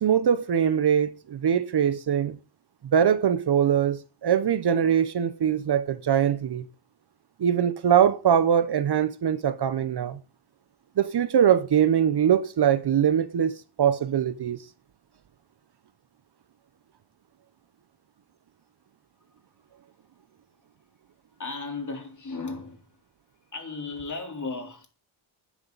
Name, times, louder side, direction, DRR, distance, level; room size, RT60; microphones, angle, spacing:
voice 1, 0.0-2.4 2.8-6.6 7.4-10.2 11.0-14.6, right 9 dB, 55° right, 0.9 m, -22 dB
voice 2, 21.4-22.9 23.5-24.9, left 3 dB, 35° left, 3.8 m, -35 dB
17.0 x 10.5 x 4.1 m
cardioid pair, 105°, 49 cm